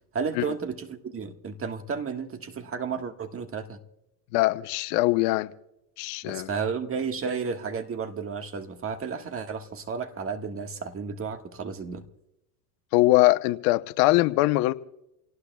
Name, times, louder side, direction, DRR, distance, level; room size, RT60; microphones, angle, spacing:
voice 1, 0.1-3.8 6.2-12.0, right 5 dB, 25° right, 1.6 m, -32 dB
voice 2, 4.3-5.5 6.0-6.5 12.9-14.7, left 19 dB, 60° left, 0.9 m, -22 dB
28.5 x 18.5 x 2.3 m
hypercardioid pair, 95°, 48 cm